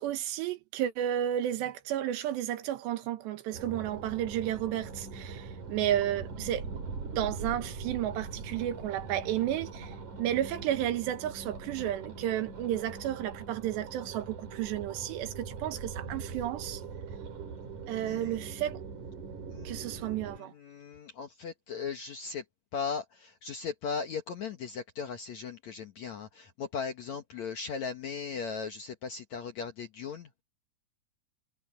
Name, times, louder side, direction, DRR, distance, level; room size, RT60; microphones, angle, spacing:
voice 1, 0.0-6.8 7.2-16.8 17.9-18.8 19.7-20.5, right 11 dB, 85° right, 3.5 m, -32 dB
sound 1, 3.5-20.4, right 4 dB, 45° right, 4.9 m, -42 dB
voice 2, 18.1-18.4 19.5-22.4 22.7-30.3, left 6 dB, 65° left, 1.8 m, -38 dB
omnidirectional pair, 4.9 m